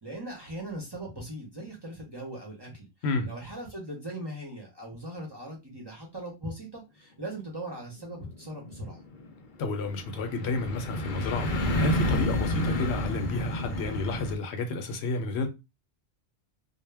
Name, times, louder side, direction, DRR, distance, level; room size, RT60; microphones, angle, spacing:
voice 1, 0.0-2.9 3.2-9.0, right 1 dB, 30° right, 0.6 m, -39 dB
sound 1, 8.0-14.4, left 1 dB, 60° left, 0.6 m, -30 dB
voice 2, 9.6-11.5 11.8-15.5, left 2 dB, 85° left, 0.9 m, -30 dB
2.1 x 2.1 x 3.2 m
omnidirectional pair, 1.1 m